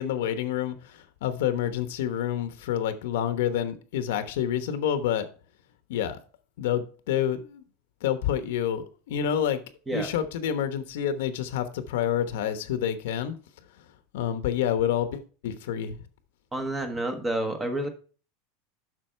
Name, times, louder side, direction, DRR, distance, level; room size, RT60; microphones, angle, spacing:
voice 1, 0.0-5.3 5.9-6.2 6.6-7.6 8.0-9.6 9.9-13.4 14.1-16.0, left 9 dB, 80° left, 1.0 m, -28 dB
voice 2, 16.5-17.9, right 1 dB, 10° right, 1.0 m, -29 dB
7.6 x 6.1 x 4.5 m
supercardioid pair, 165°, 0 cm